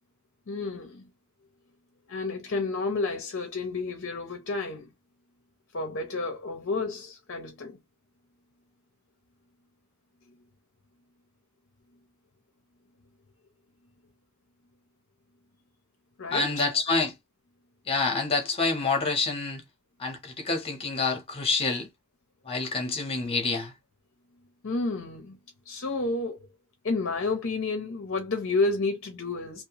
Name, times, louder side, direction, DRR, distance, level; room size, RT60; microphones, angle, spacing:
voice 1, 0.5-1.1 2.1-4.9 5.7-7.8 10.3-10.4 16.2-16.6 24.6-25.4 25.6-26.5 26.8-29.6, left 3 dB, 55° left, 0.6 m, -30 dB
voice 2, 16.3-17.1 17.9-19.6 20.0-21.9 22.4-23.7, left 3 dB, 25° left, 0.9 m, -27 dB
2.7 x 2.1 x 2.9 m
head